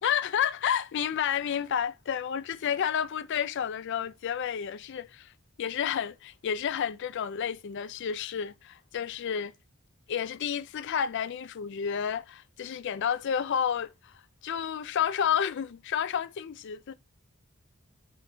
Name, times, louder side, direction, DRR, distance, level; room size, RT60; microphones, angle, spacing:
voice 1, 0.0-5.3 5.6-9.5 10.1-14.1 14.4-16.9, left 8 dB, 55° left, 0.3 m, -30 dB
6.5 x 3.0 x 2.6 m
head